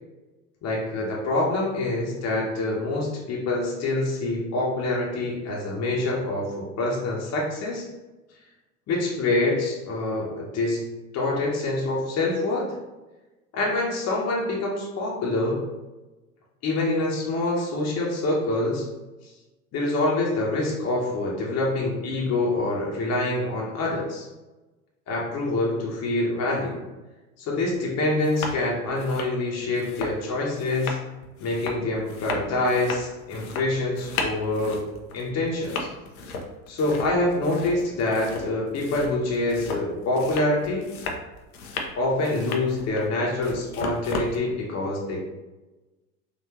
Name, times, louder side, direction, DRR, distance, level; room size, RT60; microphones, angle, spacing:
voice 1, 0.6-7.9 8.9-10.8 11.1-12.8 13.5-15.6 16.6-18.8 19.7-24.3 25.1-26.8 27.4-31.0 31.4-34.8 35.1-35.9 36.7-40.8 42.0-45.2, left 2 dB, 35° left, -3 dB, 0.9 m, -26 dB
sound 1, 27.6-27.7 28.1-28.6 28.9-44.4, left 3 dB, 80° left, 0.7 m, -35 dB
3.7 x 2.5 x 2.9 m, 1.1 s
hypercardioid pair, 75°, 43 cm